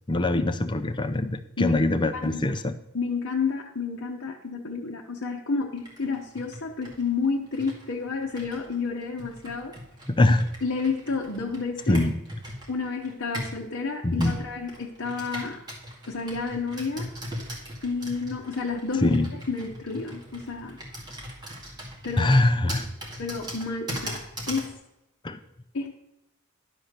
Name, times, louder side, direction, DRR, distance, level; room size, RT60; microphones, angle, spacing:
voice 1, 0.1-2.7 10.1-10.5 11.9-12.2 14.0-14.4 19.0-19.3 22.2-22.9 25.2-25.4, left 2 dB, 20° left, 8 dB, 0.5 m, -23 dB
voice 2, 2.1-2.5 2.9-9.7 10.6-12.0 12.7-15.6 16.1-17.1 17.8-20.8 22.0-22.4 23.2-24.7 25.7-25.9, left 4 dB, 55° left, -2 dB, 0.9 m, -30 dB
Computer keyboard, 5.8-13.6 14.2-24.7, equal, 20° right, 2.1 m, -39 dB
11.0 x 4.5 x 6.6 m, 0.88 s
head